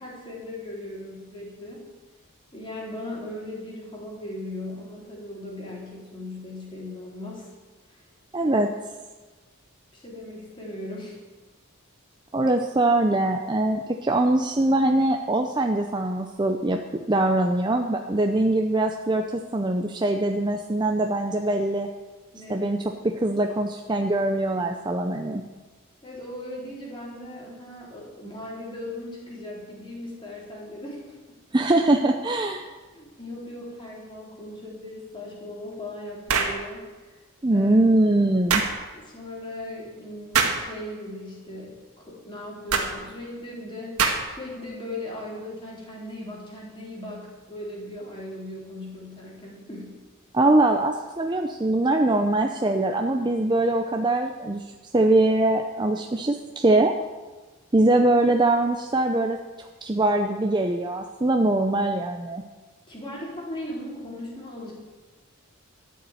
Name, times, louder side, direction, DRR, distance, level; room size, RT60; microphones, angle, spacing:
voice 1, 0.0-1.8 2.5-7.5 7.9-8.1 8.4-8.7 9.9-11.2 22.3-22.7 26.0-31.2 32.9-37.2 37.5-37.8 38.9-44.0 44.3-50.0 62.9-64.7, left 1 dB, 20° left, -4 dB, 4.0 m, -38 dB
voice 2, 8.3-8.7 12.3-21.9 22.5-22.8 23.0-25.4 31.5-32.7 37.4-38.6 50.3-54.6 54.9-56.9 57.7-62.4, right 2 dB, 20° right, 4 dB, 0.6 m, -22 dB
sound 1, 36.3-36.6 38.5-38.7 40.3-40.6 42.7-42.9 44.0-44.4, right 5 dB, 85° right, 1.8 m, -23 dB
13.0 x 6.9 x 9.1 m, 1.3 s
head